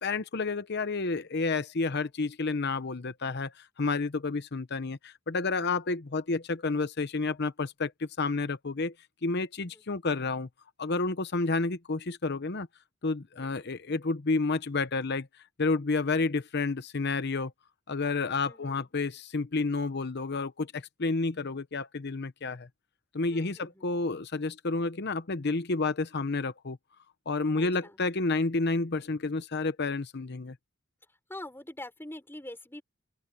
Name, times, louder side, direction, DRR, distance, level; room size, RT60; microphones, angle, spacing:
voice 1, 0.0-8.9 9.2-10.5 10.8-12.7 13.0-15.3 15.6-17.5 17.9-22.7 23.1-26.8 27.3-30.6, left 3 dB, 55° left, 0.9 m, -30 dB
voice 2, 18.4-18.9 23.3-23.9 27.5-28.0 31.1-32.8, left 1 dB, 10° left, 4.7 m, -45 dB
open air
head